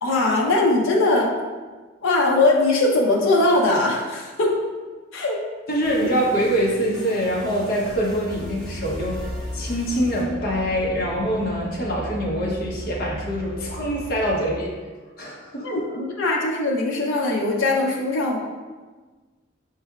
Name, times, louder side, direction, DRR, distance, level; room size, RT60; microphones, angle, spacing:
voice 1, 0.0-1.3 2.0-4.5 5.1-5.4 15.6-18.4, left 2 dB, 75° left, -2 dB, 0.6 m, -20 dB
voice 2, 5.7-9.2 9.5-14.7 15.2-15.8, equal, 50° left, -3 dB, 0.9 m, -24 dB
sound 1, 5.8-11.1, right 1 dB, 5° left, 1.1 m, -40 dB
sound 2, 8.3-14.3, equal, 45° right, 0.9 m, -36 dB
5.5 x 3.3 x 2.3 m, 1.4 s
head